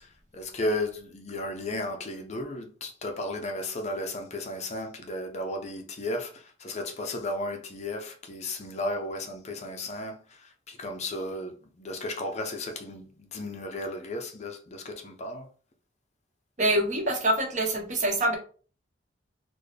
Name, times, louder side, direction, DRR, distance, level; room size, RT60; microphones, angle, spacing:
voice 1, 0.0-15.5, left 1 dB, 35° left, 0.5 m, -34 dB
voice 2, 16.6-18.4, right 1 dB, 40° right, 0.9 m, -25 dB
4.0 x 2.2 x 3.3 m
head